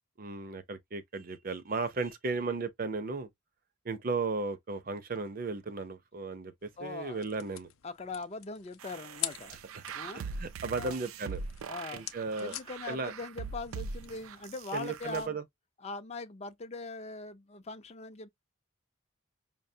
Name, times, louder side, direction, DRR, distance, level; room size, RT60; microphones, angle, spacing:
voice 1, 0.2-3.3 3.8-7.7 9.7-9.8 10.1-11.4 11.9-12.6 12.9-13.1 14.7-15.4, right 3 dB, 45° right, 0.6 m, -35 dB
sound 1, 6.6-15.1, left 13 dB, 85° left, 0.5 m, -46 dB
voice 2, 6.8-7.2 7.8-9.6 9.9-10.2 10.7-11.0 11.7-12.0 12.4-15.4 15.8-18.3, left 3 dB, 30° left, 0.5 m, -41 dB
sound 2, 8.8-15.2, right 5 dB, 90° right, 0.4 m, -42 dB
5.6 x 2.1 x 2.7 m
head